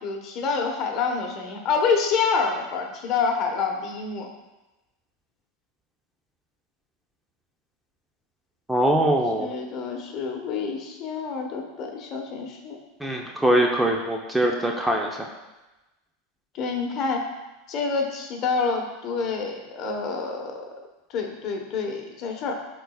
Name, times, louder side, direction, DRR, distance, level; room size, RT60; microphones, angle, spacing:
voice 1, 0.0-4.3 9.3-12.8 16.5-17.3 17.7-20.6 21.1-22.6, left 5 dB, 45° left, 2 dB, 1.2 m, -27 dB
voice 2, 8.7-9.5 13.0-15.3, right 1 dB, 5° right, 0 dB, 0.8 m, -22 dB
11.0 x 4.1 x 2.4 m, 1.0 s
hypercardioid pair, 100°, 0 cm